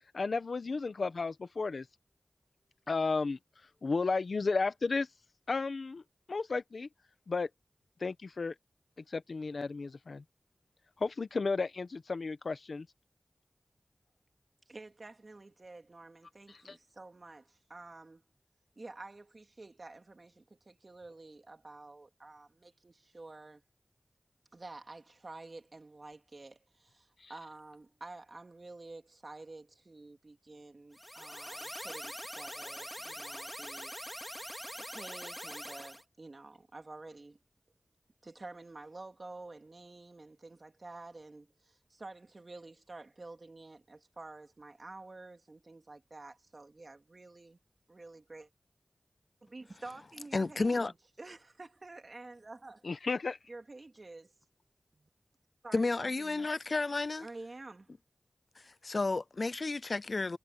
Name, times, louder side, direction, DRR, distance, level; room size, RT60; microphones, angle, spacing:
voice 1, 0.1-1.9 2.9-3.4 3.8-5.1 5.5-6.9 7.3-7.5 8.0-8.5 9.1-10.2 11.0-12.9 16.5-16.7 27.2-27.3 52.8-53.4, left 4 dB, 80° left, 1.2 m, -33 dB
voice 2, 14.7-18.2 18.8-23.6 24.5-33.9 34.8-37.4 38.2-47.6 47.9-48.5 49.4-52.8 53.5-54.3 54.9-55.1 55.6-56.5 57.2-57.9, right 2 dB, 55° right, 2.7 m, -50 dB
sound 1, 30.9-36.0, equal, 5° left, 2.6 m, -43 dB
voice 3, 50.3-50.9 55.7-57.3 58.6-60.4, left 3 dB, 60° left, 0.4 m, -32 dB
wide cardioid pair, 55°, 0 cm